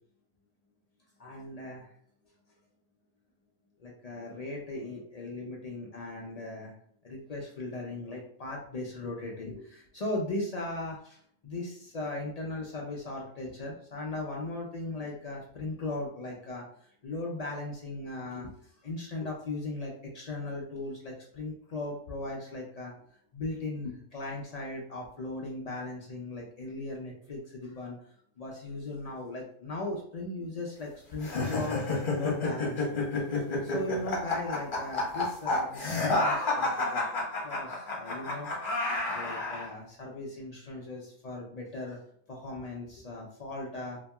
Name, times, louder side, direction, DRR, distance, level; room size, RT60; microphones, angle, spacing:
voice 1, 1.2-1.9 3.8-6.7 7.0-22.9 23.3-32.9 33.6-37.0 37.4-38.5 38.9-42.0 42.3-44.0, left 2 dB, 65° left, -2 dB, 0.4 m, -38 dB
sound 1, 31.2-39.7, left 2 dB, 45° left, 0.9 m, -30 dB
2.9 x 2.7 x 2.2 m, 0.64 s
omnidirectional pair, 1.3 m